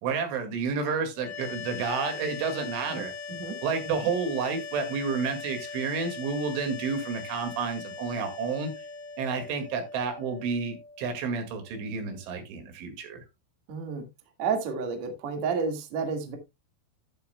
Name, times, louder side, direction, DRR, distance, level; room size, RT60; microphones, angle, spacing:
voice 1, 0.0-3.1 3.6-8.7 9.2-13.2, right 5 dB, 80° right, 6 dB, 4.5 m, -30 dB
sound 1, 1.1-12.2, left 5 dB, 75° left, 4.5 m, -41 dB
voice 2, 13.7-14.1 14.4-16.4, right 5 dB, 50° right, 5 dB, 2.4 m, -31 dB
11.5 x 11.0 x 2.3 m, 0.23 s
omnidirectional pair, 5.4 m